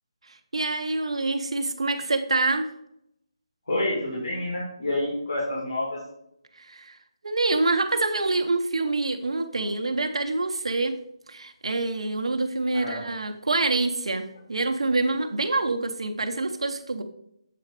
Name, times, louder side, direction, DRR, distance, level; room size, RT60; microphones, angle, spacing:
voice 1, 0.3-2.7 6.5-7.0 7.2-11.0 11.3-17.0, right 3 dB, 90° right, 7 dB, 0.8 m, -26 dB
voice 2, 3.7-6.0 12.7-13.0, left 1 dB, 70° left, -3 dB, 2.4 m, -28 dB
7.6 x 4.1 x 5.2 m, 0.77 s
hypercardioid pair, 165°, 3 cm